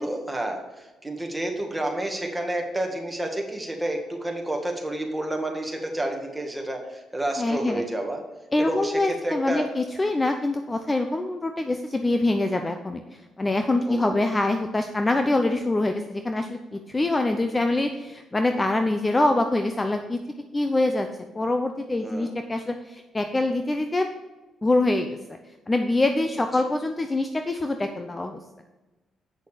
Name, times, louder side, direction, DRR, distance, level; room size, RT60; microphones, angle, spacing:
voice 1, 0.0-8.2 8.6-9.7 13.9-14.2 22.0-22.3, right 1 dB, 10° right, 2 dB, 1.8 m, -30 dB
voice 2, 7.4-7.8 8.5-13.0 13.4-20.2 20.5-21.1 21.3-24.1 24.6-25.4 25.7-28.4, left 2 dB, 20° left, 6 dB, 0.6 m, -24 dB
8.3 x 6.6 x 5.1 m, 1.1 s
cardioid pair, 90°, 0 cm